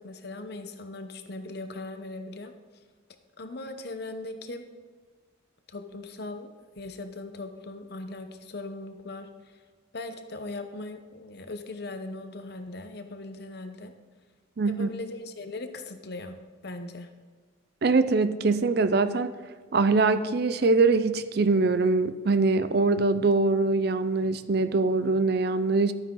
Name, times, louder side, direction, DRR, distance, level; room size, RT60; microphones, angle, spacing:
voice 1, 0.0-2.5 3.4-4.7 5.7-6.5 6.8-9.3 9.9-13.9 14.7-17.1, left 2 dB, 55° left, 7 dB, 0.8 m, -39 dB
voice 2, 14.6-14.9 17.8-19.3 19.7-25.9, right 3 dB, 50° right, 12 dB, 0.5 m, -23 dB
12.0 x 9.0 x 3.8 m, 1.5 s
head